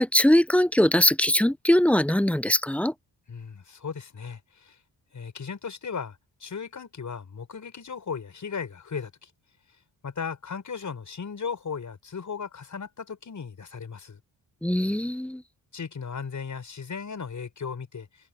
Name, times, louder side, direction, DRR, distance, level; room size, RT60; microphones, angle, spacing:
voice 1, 0.0-2.9 14.6-15.4, left 1 dB, 5° left, 0.6 m, -21 dB
voice 2, 3.3-4.8 5.1-9.3 10.0-14.2 15.7-18.1, left 6 dB, 45° left, 6.4 m, -36 dB
cardioid pair, 80°, 41 cm